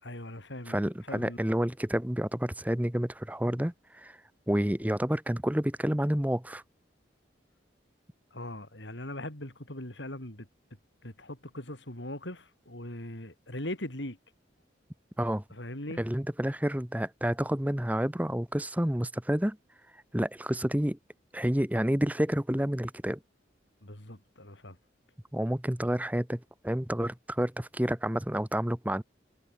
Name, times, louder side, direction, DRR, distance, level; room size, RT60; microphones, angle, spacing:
voice 1, 0.0-1.4 8.3-10.5 11.0-14.2 15.5-16.0 23.8-24.8, left 1 dB, 75° left, 5.6 m, -40 dB
voice 2, 0.7-4.2 4.5-6.6 15.2-15.4 16.0-19.6 20.1-21.0 21.3-23.2 25.3-29.0, equal, 10° right, 1.0 m, -29 dB
head